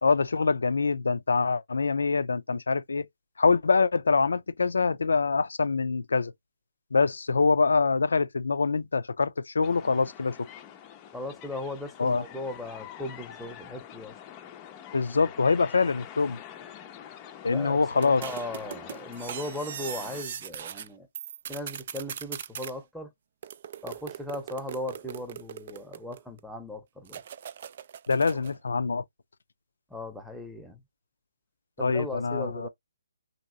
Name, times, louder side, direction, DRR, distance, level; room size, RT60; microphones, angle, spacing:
voice 1, 0.0-3.0 3.4-6.3 6.9-10.4 12.0-12.2 14.9-16.4 17.4-18.2 28.1-29.0 31.8-32.7, left 4 dB, 70° left, 0.5 m, -25 dB
sound 1, 9.6-20.2, left 10 dB, 25° left, 0.5 m, -46 dB
voice 2, 11.1-14.1 17.5-21.1 21.5-23.1 23.8-27.2 29.9-30.8 31.8-32.7, left 1 dB, ahead, 0.8 m, -37 dB
sound 2, 18.0-20.9 21.1-22.7 23.4-26.4 27.1-28.6, right 9 dB, 45° right, 0.3 m, -40 dB
2.9 x 2.7 x 2.7 m
figure-of-eight pair, 140°, 0 cm